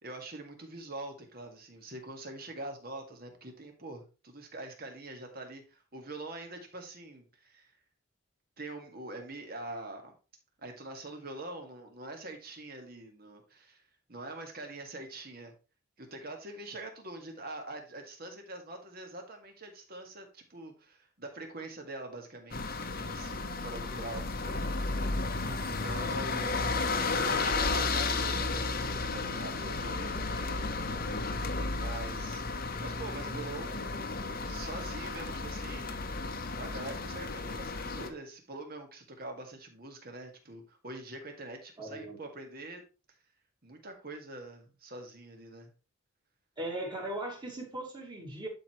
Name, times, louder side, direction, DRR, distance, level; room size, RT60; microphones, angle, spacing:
voice 1, 0.0-7.7 8.6-10.1 10.6-13.8 14.1-15.5 16.0-25.2 25.6-26.7 27.2-30.7 31.7-32.5 32.8-36.0 36.6-42.8 43.6-45.7, right 2 dB, 45° right, 4 dB, 1.9 m, -44 dB
sound 1, 22.5-38.1, left 3 dB, 45° left, 0.9 m, -33 dB
voice 2, 25.4-26.1 41.8-42.2 46.6-48.5, right 1 dB, 20° right, -1 dB, 2.4 m, -39 dB
11.5 x 4.7 x 3.2 m, 0.33 s
head